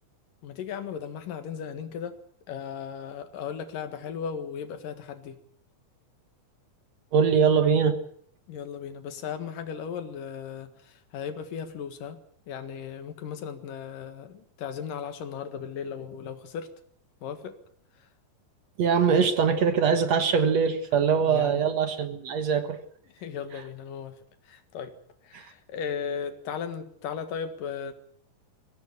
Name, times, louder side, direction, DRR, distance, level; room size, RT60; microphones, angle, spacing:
voice 1, 0.4-2.2 2.5-5.4 8.5-12.2 12.5-16.7 17.2-17.5 21.2-21.7 23.2-24.2 24.5-24.9 25.2-27.9, left 7 dB, 75° left, 9 dB, 3.3 m, -36 dB
voice 2, 7.1-8.0 18.8-22.8 25.3-25.5, right 6 dB, 60° right, 9 dB, 2.4 m, -22 dB
23.0 x 16.0 x 8.3 m, 0.63 s
omnidirectional pair, 3.9 m